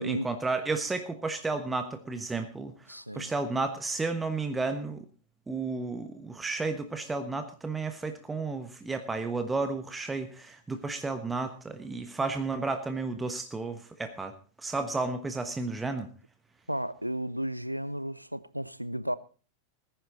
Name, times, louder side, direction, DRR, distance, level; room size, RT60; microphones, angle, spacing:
voice 1, 0.0-2.7 3.1-5.0 5.5-16.1, right 3 dB, 10° right, 1.2 m, -32 dB
voice 2, 2.9-3.3 16.7-19.1, right 1 dB, 90° right, 0.6 m, -33 dB
19.5 x 10.5 x 4.0 m
figure-of-eight pair, 90°, 0 cm